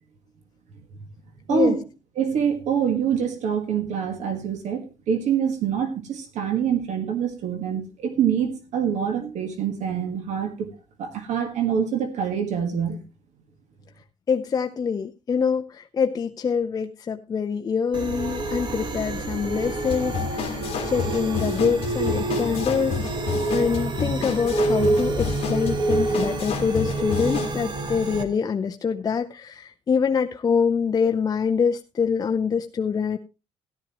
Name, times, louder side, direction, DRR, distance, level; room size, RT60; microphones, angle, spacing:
voice 1, 1.5-1.8 2.2-10.5 11.0-13.0, right 7 dB, 70° right, 7 dB, 1.7 m, -25 dB
voice 2, 14.3-23.0 23.5-33.2, left 6 dB, 30° left, 6 dB, 0.6 m, -25 dB
sound 1, 17.9-28.2, right 2 dB, 40° right, 1.7 m, -27 dB
sound 2, 19.9-27.6, left 7 dB, 55° left, 1.8 m, -31 dB
14.0 x 11.5 x 3.0 m, 0.29 s
cardioid pair, 145°, 12 cm